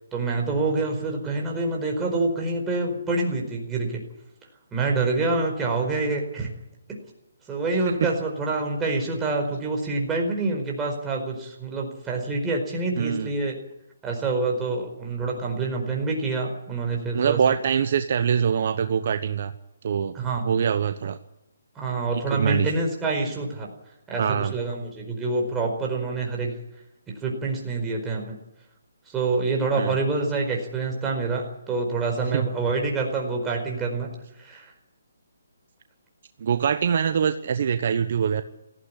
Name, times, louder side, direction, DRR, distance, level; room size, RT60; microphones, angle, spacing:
voice 1, 0.1-4.0 4.7-6.5 7.5-13.6 14.0-17.4 20.1-20.4 21.7-23.7 24.1-26.5 27.2-28.3 29.1-34.1 34.4-34.7, right 3 dB, 10° right, 0 dB, 4.8 m, -26 dB
voice 2, 13.0-13.3 17.1-19.5 19.8-20.2 20.4-21.2 22.3-22.7 24.2-24.5 29.8-30.0 32.3-32.5 36.4-38.4, right 7 dB, 50° right, 10 dB, 1.0 m, -23 dB
18.0 x 15.0 x 10.0 m, 0.86 s
hypercardioid pair, 155°, 0 cm